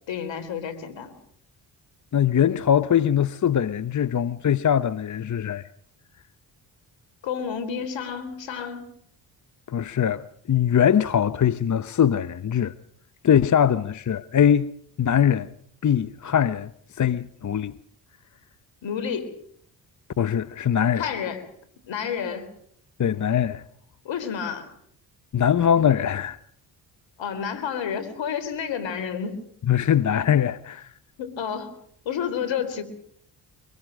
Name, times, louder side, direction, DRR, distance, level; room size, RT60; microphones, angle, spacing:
voice 1, 0.1-1.1 7.2-8.8 18.8-19.3 20.9-21.5 21.9-22.5 24.0-24.7 27.2-29.4 31.2-31.8 32.1-32.8, left 7 dB, 70° left, 3.8 m, -30 dB
voice 2, 2.1-5.6 9.7-12.7 13.2-14.7 15.0-15.5 15.8-16.7 17.0-17.8 20.2-21.1 23.0-23.6 25.3-26.4 29.7-30.9, left 9 dB, 40° left, 0.9 m, -22 dB
24.5 x 21.5 x 6.5 m
hypercardioid pair, 50°, 46 cm